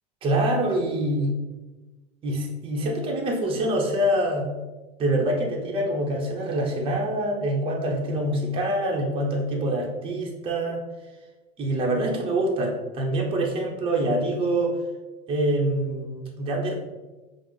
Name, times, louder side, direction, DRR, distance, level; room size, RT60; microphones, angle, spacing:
voice 1, 0.2-1.3 2.2-4.5 5.0-10.8 11.6-14.8 15.3-16.7, right 1 dB, 25° right, 0 dB, 0.7 m, -25 dB
4.8 x 2.0 x 3.6 m, 1.2 s
supercardioid pair, 120°, 21 cm